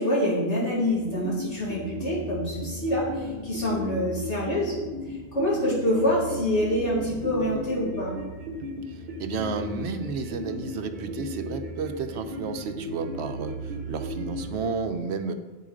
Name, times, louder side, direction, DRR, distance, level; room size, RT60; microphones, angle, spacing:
voice 1, 0.0-4.8 5.1-8.2, left 1 dB, 85° left, -6 dB, 3.0 m, -26 dB
sound 1, 0.7-14.7, equal, 45° right, 1.1 m, -35 dB
voice 2, 9.2-13.6 13.9-15.3, right 5 dB, 70° right, 8 dB, 0.9 m, -32 dB
7.6 x 7.0 x 5.0 m, 1.2 s
omnidirectional pair, 1.2 m